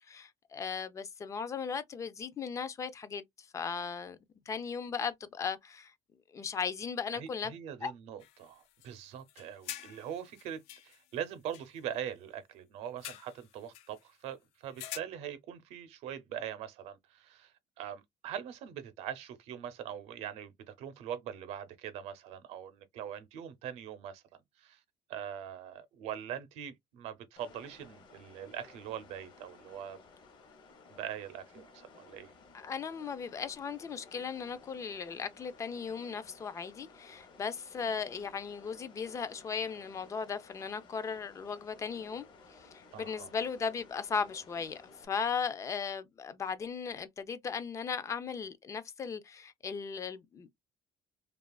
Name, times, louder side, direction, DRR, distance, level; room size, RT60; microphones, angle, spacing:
voice 1, 0.1-4.2 4.5-5.9 6.3-7.5 7.8-7.9 32.5-42.2 42.5-50.5, left 6 dB, 30° left, 0.3 m, -37 dB
voice 2, 7.1-24.2 24.6-24.8 25.1-30.0 30.9-32.3 42.9-43.3, right 9 dB, 80° right, 0.6 m, -42 dB
sound 1, 8.2-8.9 9.2-11.8 13.0-14.1 14.7-15.0, left 12 dB, 85° left, 0.5 m, -47 dB
sound 2, 27.4-45.1, left 4 dB, 45° left, 0.8 m, -57 dB
2.8 x 2.3 x 2.3 m
cardioid pair, 135°, 11 cm